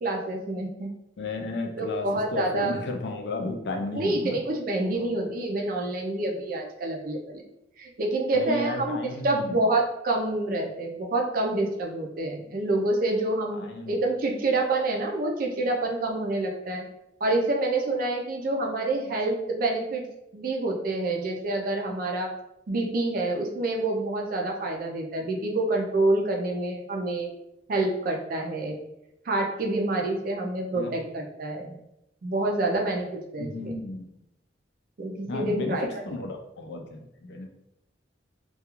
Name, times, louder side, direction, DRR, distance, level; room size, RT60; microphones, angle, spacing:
voice 1, 0.0-0.9 1.8-2.8 3.9-7.4 7.8-9.0 9.2-16.8 17.2-20.0 20.3-22.3 22.7-27.3 27.7-28.8 29.3-31.8 32.2-33.5 35.0-35.9, right 2 dB, 45° right, 1 dB, 0.4 m, -27 dB
voice 2, 1.2-4.4 5.0-5.3 8.3-9.7 13.5-14.0 30.7-30.9 33.4-34.1 35.3-37.5, left 2 dB, 60° left, 4 dB, 0.4 m, -33 dB
2.3 x 2.3 x 2.9 m, 0.85 s
head